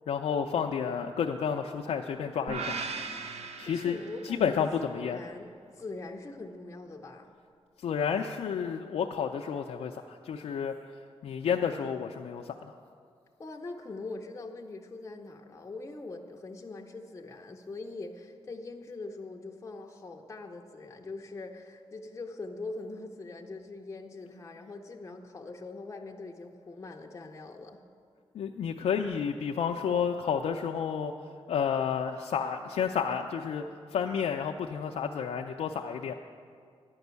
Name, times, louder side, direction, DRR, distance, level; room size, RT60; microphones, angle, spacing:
voice 1, 0.1-2.8 3.6-4.0 4.2-5.2 7.8-10.7 11.2-12.7 28.3-31.1 31.5-33.6 33.9-36.1, left 7 dB, 85° left, 2 dB, 0.4 m, -30 dB
sound 1, 2.5-4.7, right 4 dB, 85° right, 0.6 m, -38 dB
voice 2, 3.6-5.5 5.8-7.3 13.4-27.8, left 3 dB, 25° left, 2 dB, 0.5 m, -42 dB
10.5 x 5.3 x 8.1 m, 2.2 s
wide cardioid pair, 135°, 11 cm